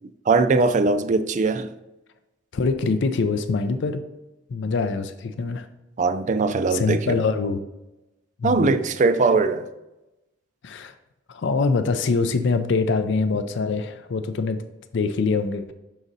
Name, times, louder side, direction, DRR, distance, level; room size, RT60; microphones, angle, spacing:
voice 1, 0.3-1.7 6.0-7.2 8.4-9.6, right 3 dB, 40° right, 0.4 m, -20 dB
voice 2, 2.5-4.0 4.5-5.7 6.7-7.6 8.4-8.8 10.6-10.9 11.3-14.6 14.9-15.7, left 4 dB, 65° left, 0.4 m, -24 dB
6.0 x 3.9 x 4.0 m
head